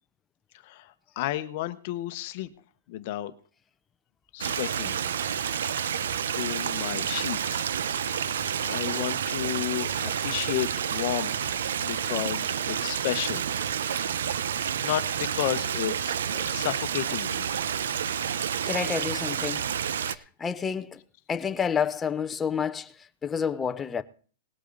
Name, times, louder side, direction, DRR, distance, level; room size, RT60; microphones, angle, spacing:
voice 1, 0.6-2.5 2.9-3.3 4.3-5.0 5.4-5.6 5.9-7.7 8.1-8.3 8.6-11.4 11.8-13.4 14.8-17.5, left 14 dB, 35° left, 0.9 m, -32 dB
Stream, 4.4-20.1, right 8 dB, 70° right, 0.7 m, -29 dB
voice 2, 18.7-19.6 20.1-21.0 21.3-24.0, left 7 dB, 10° left, 0.6 m, -29 dB
19.5 x 8.4 x 3.9 m
hypercardioid pair, 175°, 0 cm